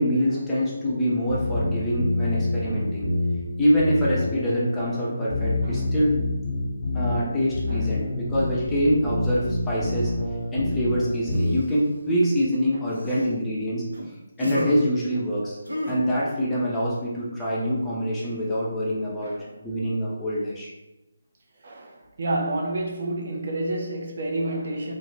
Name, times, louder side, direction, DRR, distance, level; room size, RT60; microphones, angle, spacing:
voice 1, 0.0-3.1 3.6-6.2 6.9-10.1 10.5-13.9 14.4-15.6 15.9-19.3 19.6-20.7, equal, 10° left, -8 dB, 0.6 m, -25 dB
sound 1, 1.3-11.5, left 2 dB, 30° left, 1.0 m, -27 dB
voice 2, 7.7-8.1 9.9-10.1 12.7-13.0 19.2-19.5 21.6-24.9, right 2 dB, 50° right, 0 dB, 0.5 m, -30 dB
sound 2, 11.3-12.0 12.9-13.3 13.9-14.1 14.4-14.8 15.7-15.9, equal, 90° right, 0.8 m, -33 dB
2.3 x 2.1 x 3.1 m, 0.97 s
figure-of-eight pair, 150°, 0 cm